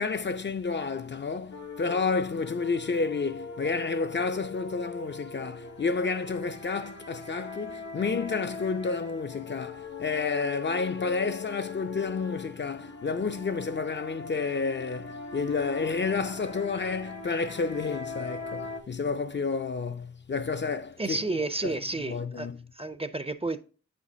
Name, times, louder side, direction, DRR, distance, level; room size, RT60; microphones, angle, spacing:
voice 1, 0.0-22.6, left 4 dB, 40° left, 0.4 m, -30 dB
sound 1, 1.5-18.8, left 3 dB, 65° left, 1.1 m, -41 dB
voice 2, 21.0-22.5 22.7-23.6, right 2 dB, 20° right, 0.5 m, -31 dB
8.0 x 5.1 x 2.7 m
cardioid pair, 45°, 29 cm